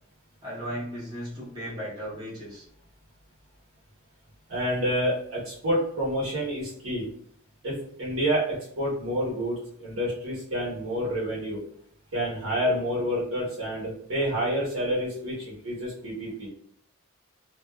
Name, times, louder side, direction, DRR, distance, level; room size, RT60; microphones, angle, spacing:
voice 1, 0.4-2.6, equal, 20° right, -10 dB, 0.9 m, -36 dB
voice 2, 4.5-7.1 7.6-11.6 12.1-16.5, equal, 70° right, -6 dB, 1.1 m, -28 dB
2.5 x 2.3 x 2.2 m, 0.62 s
head